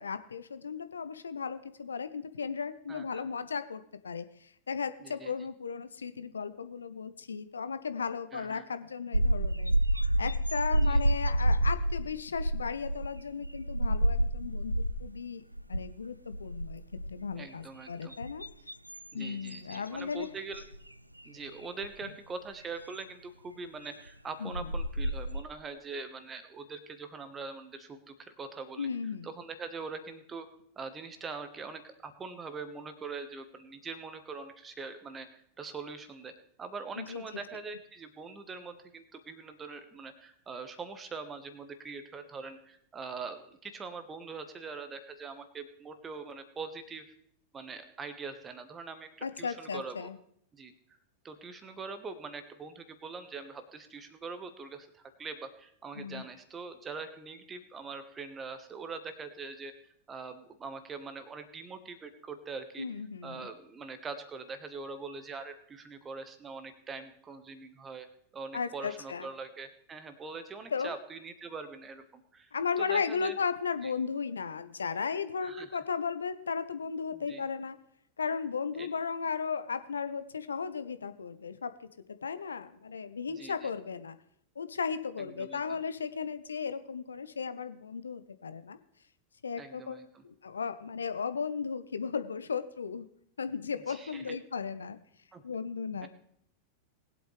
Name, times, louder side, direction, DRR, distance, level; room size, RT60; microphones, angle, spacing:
voice 1, 0.0-9.7 10.2-15.4 15.7-18.5 19.1-20.3 24.4-24.7 28.8-29.3 37.0-37.2 49.2-50.2 55.9-56.2 62.8-63.5 68.5-69.3 70.7-70.9 72.5-77.8 78.2-84.2 84.6-88.8 89.4-90.0 90.2-93.1 93.4-95.0 95.4-96.1, left 6 dB, 70° left, 12 dB, 0.7 m, -35 dB
voice 2, 2.9-3.3 5.0-5.5 8.3-8.7 10.8-11.0 17.4-18.2 19.1-20.6 21.2-28.9 29.2-30.5 30.8-36.3 36.6-47.0 47.5-50.1 50.5-50.7 51.2-59.7 60.1-62.9 63.2-68.1 68.3-72.5 72.8-73.3 73.8-73.9 75.4-75.8 77.1-77.4 78.8-78.9 83.3-83.7 85.2-85.6 89.6-90.2 93.9-94.4 95.3-95.4 96.0-96.1, right 4 dB, 20° right, 9 dB, 1.3 m, -43 dB
sound 1, 9.1-15.2 15.5-15.9 16.3-17.3 17.9-20.1 20.5-20.8 21.8-21.9 24.1-24.2 24.5-25.4, right 1 dB, 90° right, 0.4 m, -29 dB
20.5 x 8.1 x 3.3 m, 0.69 s
figure-of-eight pair, 90°, 0 cm